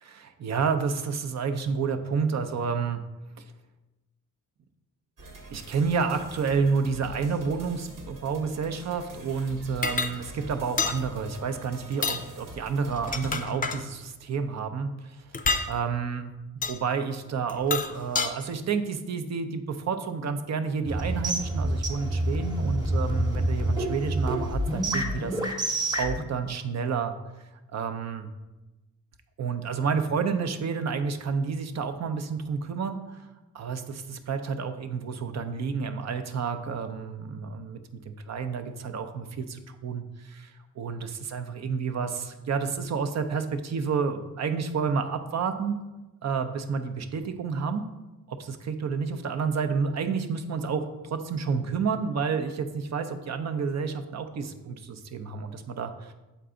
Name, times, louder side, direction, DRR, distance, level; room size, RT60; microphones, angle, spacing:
voice 1, 0.0-3.0 3.4-3.5 5.5-16.3 16.7-25.7 26.0-27.1 27.7-28.3 29.4-33.2 33.5-37.8 38.1-45.8 46.2-47.8 48.3-56.1, right 5 dB, 55° right, 8 dB, 0.6 m, -30 dB
sound 1, 5.2-13.4, right 1 dB, 80° right, 1.3 m, -45 dB
sound 2, 9.8-10.1 10.8-11.0 11.9-12.2 12.9-13.8 15.3-15.7 16.6-16.8 17.5-18.3, left 4 dB, 25° left, 0.5 m, -28 dB
sound 3, 20.9-26.2, right 1 dB, 15° right, 1.0 m, -27 dB
6.9 x 4.6 x 3.7 m, 1.1 s
cardioid pair, 90°, 32 cm